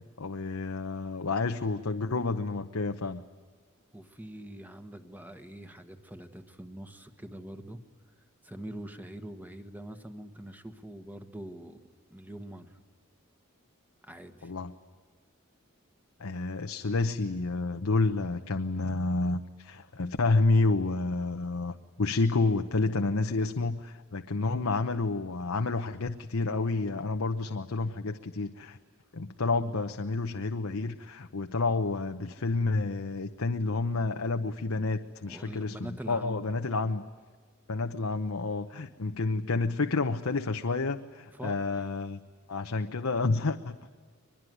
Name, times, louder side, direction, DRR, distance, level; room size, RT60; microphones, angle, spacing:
voice 1, 0.2-3.2 14.4-14.7 16.2-28.8 29.1-37.0 37.7-42.2 42.5-43.8, left 3 dB, 90° left, 7 dB, 0.9 m, -29 dB
voice 2, 3.9-7.8 8.4-11.8 12.1-12.8 14.0-14.5 35.2-36.4 41.4-41.5, right 1 dB, 10° right, 9 dB, 1.3 m, -44 dB
23.0 x 21.5 x 9.4 m, 1.5 s
head